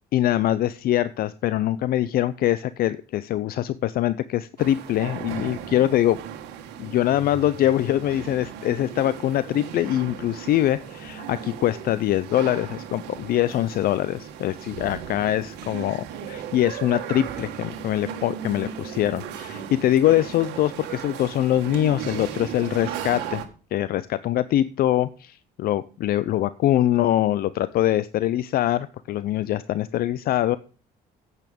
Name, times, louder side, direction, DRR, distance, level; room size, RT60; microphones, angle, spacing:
voice 1, 0.1-6.2 6.8-23.4 23.7-30.6, left 13 dB, 60° left, 15 dB, 0.5 m, -23 dB
sound 1, 4.6-23.5, right 9 dB, 85° right, 1.7 m, -36 dB
9.3 x 8.2 x 5.1 m, 0.37 s
cardioid pair, 110°, 17 cm